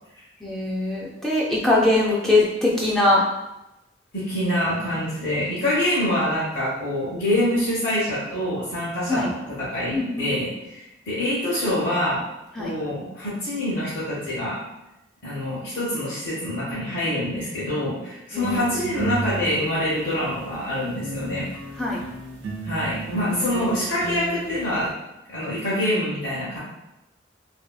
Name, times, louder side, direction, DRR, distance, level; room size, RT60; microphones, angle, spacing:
voice 1, 0.4-3.2 9.1-9.3 9.9-10.3 12.6-12.7 18.3-19.0 21.8-22.0, left 2 dB, 5° left, -6 dB, 0.3 m, -22 dB
voice 2, 4.1-12.2 12.6-14.6 15.2-21.4 22.6-24.9 25.3-26.6, left 1 dB, 60° left, -10 dB, 0.8 m, -25 dB
sound 1, 18.3-20.6 21.0-24.9, right 2 dB, 80° right, 0.6 m, -33 dB
2.6 x 2.6 x 2.3 m, 0.93 s
head